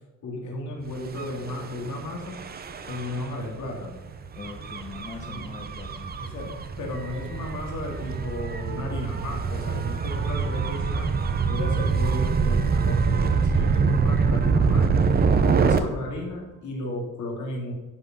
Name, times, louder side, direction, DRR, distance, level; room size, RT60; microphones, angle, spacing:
voice 1, 0.2-2.4 2.9-4.0 5.2-5.4 6.2-11.1 11.5-15.0 15.6-17.7, left 1 dB, 70° left, -1 dB, 3.6 m, -34 dB
Gull seagull / Waves surf / Siren, 1.1-15.8, right 5 dB, 30° right, 0.8 m, -25 dB
voice 2, 4.4-6.2 15.7-15.9, left 4 dB, 25° left, 1 dB, 1.3 m, -40 dB
11.5 x 8.0 x 5.8 m, 1.1 s
cardioid pair, 155°, 30 cm